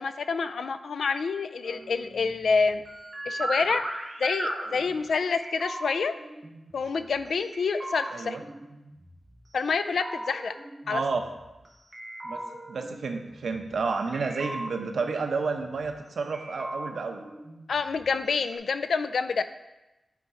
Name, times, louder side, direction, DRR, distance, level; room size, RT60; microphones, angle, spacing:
voice 1, 0.0-2.8 3.3-3.8 4.2-6.1 6.7-8.4 9.5-10.5 10.9-11.0 17.7-19.4, left 5 dB, 90° left, 11 dB, 0.4 m, -27 dB
sound 1, 1.6-7.3 7.5-9.4 9.7-11.7 11.9-13.9 14.1-16.0 16.3-18.3 18.5-18.6, right 1 dB, 25° right, 1.1 m, -38 dB
voice 2, 10.9-11.2 12.2-12.4 12.7-17.2, right 4 dB, 85° right, 4 dB, 0.8 m, -30 dB
8.3 x 4.1 x 4.8 m, 1.0 s
wide cardioid pair, 170°, 0 cm